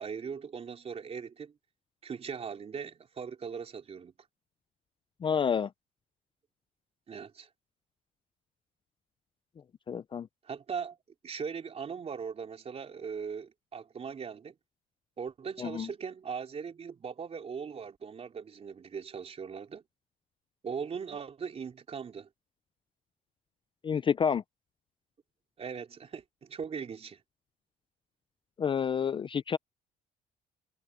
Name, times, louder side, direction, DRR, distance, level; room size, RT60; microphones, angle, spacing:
voice 1, 0.0-1.5 2.0-4.1 7.1-7.5 10.4-11.0 11.2-14.6 15.2-19.8 20.6-22.3 25.6-27.2, right 6 dB, 35° right, 3.6 m, -39 dB
voice 2, 5.2-5.7 9.9-10.3 15.6-15.9 23.8-24.4 28.6-29.6, left 7 dB, 30° left, 0.5 m, -29 dB
cardioid pair, 110°, 17 cm